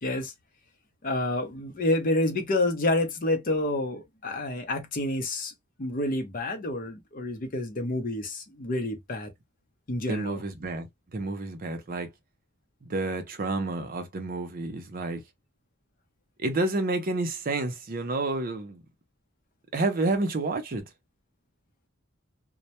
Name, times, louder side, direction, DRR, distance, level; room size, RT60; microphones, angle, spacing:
voice 1, 0.0-0.3 1.0-5.5 5.8-9.3 9.9-10.4, left 1 dB, 40° left, 0.6 m, -28 dB
voice 2, 10.1-12.1 12.8-15.2 16.4-18.8 19.7-20.8, right 2 dB, 40° right, 0.5 m, -29 dB
2.1 x 2.1 x 2.8 m
head